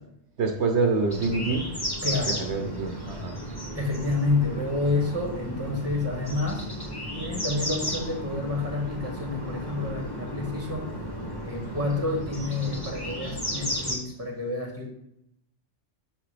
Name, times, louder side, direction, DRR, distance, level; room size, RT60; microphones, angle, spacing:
voice 1, 0.4-1.7 2.4-3.4, right 4 dB, 75° right, 3 dB, 1.2 m, -26 dB
sound 1, 1.1-14.0, equal, 20° left, 1.2 m, -34 dB
voice 2, 2.0-2.7 3.7-6.7 7.1-10.9 11.4-14.9, left 3 dB, 10° right, 0 dB, 1.5 m, -29 dB
6.4 x 5.8 x 3.4 m, 0.78 s
omnidirectional pair, 1.2 m